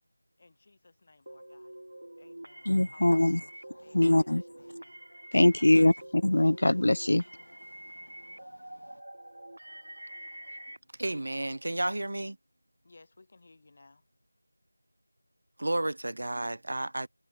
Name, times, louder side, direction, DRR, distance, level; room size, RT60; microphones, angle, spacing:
voice 1, 0.4-1.7 2.2-3.5 3.8-5.1 5.5-6.1 12.8-14.0, left 3 dB, 30° left, 7.5 m, -59 dB
sound 1, 1.3-10.8, right 1 dB, 85° right, 3.5 m, -47 dB
voice 2, 2.7-3.4 3.9-4.4 5.3-5.9 6.2-7.2, left 1 dB, 70° left, 0.4 m, -22 dB
voice 3, 11.0-12.4 15.6-17.1, right 1 dB, 60° right, 2.3 m, -32 dB
figure-of-eight pair, 175°, 0 cm